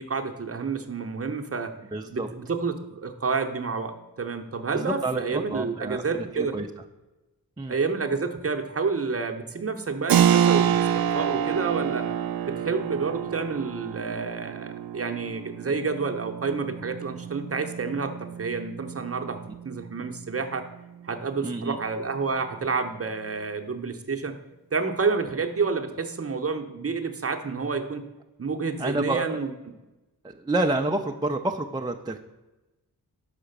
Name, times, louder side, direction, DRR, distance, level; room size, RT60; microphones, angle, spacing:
voice 1, 0.0-1.7 2.1-6.5 7.7-12.1 12.4-19.4 19.6-20.7 21.0-24.4 24.7-28.0 28.4-29.5, right 4 dB, 40° right, 5 dB, 0.8 m, -29 dB
voice 2, 1.9-2.3 4.7-6.7 7.6-7.7 21.4-21.8 28.8-29.4 30.2-32.2, right 2 dB, 10° right, 4 dB, 0.4 m, -29 dB
Keyboard (musical), 10.1-20.5, right 9 dB, 70° right, 0.5 m, -28 dB
5.7 x 4.9 x 6.6 m, 1.1 s
wide cardioid pair, 75°, 37 cm